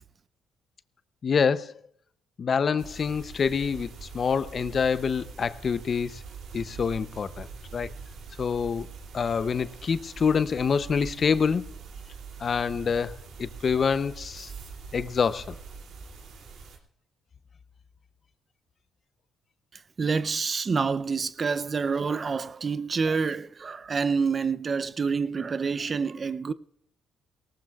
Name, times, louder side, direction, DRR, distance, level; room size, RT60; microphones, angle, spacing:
voice 1, 1.2-1.7 2.4-6.2 6.5-7.5 7.7-7.9 8.4-8.9 9.1-11.6 12.4-14.5 14.9-15.6, left 6 dB, 45° left, 0.6 m, -26 dB
sound 1, 2.8-16.8, right 5 dB, 70° right, 2.7 m, -43 dB
voice 2, 20.0-26.5, right 5 dB, 40° right, 0.5 m, -27 dB
19.0 x 18.0 x 2.4 m
cardioid pair, 90°, 0 cm